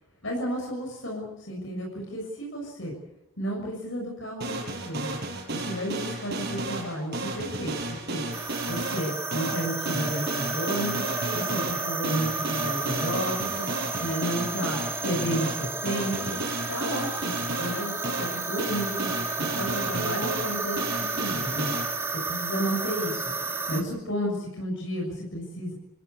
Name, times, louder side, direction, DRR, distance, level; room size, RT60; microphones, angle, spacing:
voice 1, 0.2-3.0 3.4-5.2 5.5-7.7 8.1-10.9 11.3-13.7 14.0-16.4 16.7-19.1 19.4-21.7 22.3-25.7, equal, 65° left, -1 dB, 7.0 m, -32 dB
sound 1, 4.4-21.9, right 2 dB, 50° right, 6.0 m, -33 dB
sound 2, 8.3-23.8, right 3 dB, 15° right, 2.2 m, -32 dB
28.5 x 16.5 x 8.4 m, 0.90 s
head